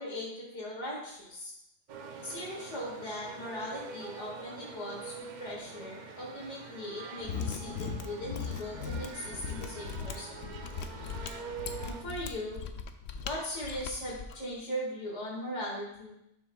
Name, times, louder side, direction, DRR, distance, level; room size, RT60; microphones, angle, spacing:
voice 1, 0.0-1.5 2.2-10.5 11.8-12.6 13.2-16.1, equal, 70° left, -4 dB, 2.1 m, -39 dB
sound 1, 1.9-12.0, right 5 dB, 50° right, 0.6 m, -45 dB
Mechanisms, 7.2-14.4, left 6 dB, 90° left, 1.0 m, -39 dB
11.5 x 6.0 x 2.3 m, 0.80 s
omnidirectional pair, 1.3 m